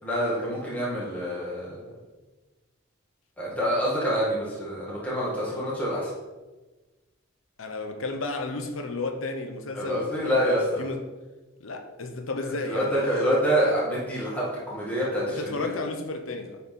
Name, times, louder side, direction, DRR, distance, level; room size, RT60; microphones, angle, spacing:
voice 1, 0.0-1.9 3.4-6.1 9.7-10.8 12.6-15.7, equal, 10° left, 1.8 m, -27 dB
voice 2, 7.6-10.4 10.8-11.0 11.6-13.4 15.3-16.6, left 3 dB, 85° left, 0.9 m, -33 dB
10.0 x 4.2 x 3.7 m
head